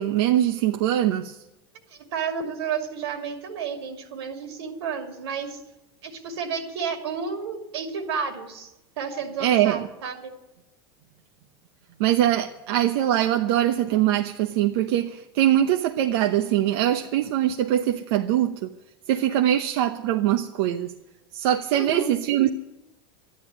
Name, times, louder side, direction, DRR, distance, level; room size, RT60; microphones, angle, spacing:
voice 1, 0.0-1.4 9.4-9.9 12.0-18.7 19.1-20.9 21.3-22.5, right 12 dB, 70° right, 5 dB, 0.9 m, -22 dB
voice 2, 1.9-5.6 6.0-10.3 21.7-22.1, right 6 dB, 90° right, 4 dB, 2.6 m, -31 dB
13.0 x 10.5 x 9.7 m, 0.94 s
supercardioid pair, 135°, 13 cm